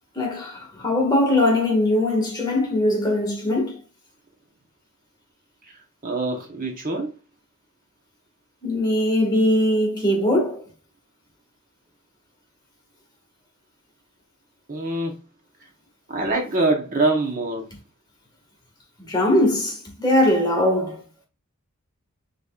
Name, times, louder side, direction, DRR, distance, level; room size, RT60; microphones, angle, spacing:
voice 1, 0.1-3.8 8.6-10.6 19.0-21.0, left 1 dB, 20° left, 1.7 m, -21 dB
voice 2, 6.0-7.1 14.7-15.2 16.1-17.6, right 2 dB, 40° right, 1.0 m, -24 dB
5.4 x 4.0 x 2.4 m
head